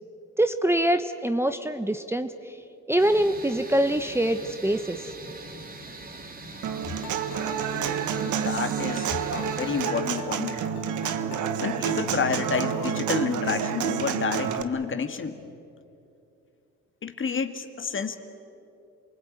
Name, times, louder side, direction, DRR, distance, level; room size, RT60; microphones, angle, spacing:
voice 1, 0.4-2.3 2.9-5.1, right 1 dB, 10° right, 9 dB, 1.0 m, -24 dB
sound 1, 3.0-9.9, right 2 dB, 30° right, 2.6 m, -42 dB
Human voice / Acoustic guitar, 6.6-14.6, right 8 dB, 75° right, 1.4 m, -29 dB
sound 2, 7.0-13.1, left 7 dB, 75° left, 2.0 m, -43 dB
voice 2, 8.2-10.7 11.6-15.4 17.0-18.2, left 5 dB, 40° left, 8 dB, 2.1 m, -30 dB
28.5 x 20.0 x 9.3 m, 2.7 s
cardioid pair, 90°, 30 cm